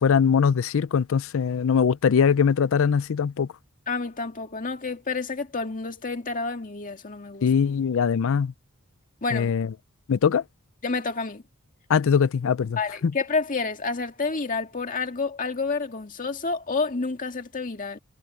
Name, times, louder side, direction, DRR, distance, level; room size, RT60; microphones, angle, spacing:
voice 1, 0.0-3.5 7.4-8.5 9.3-9.7 10.1-10.4 11.9-13.1, left 6 dB, 70° left, 0.4 m, -22 dB
voice 2, 3.9-7.5 9.2-9.5 10.8-11.4 12.8-18.0, left 4 dB, 40° left, 2.0 m, -29 dB
head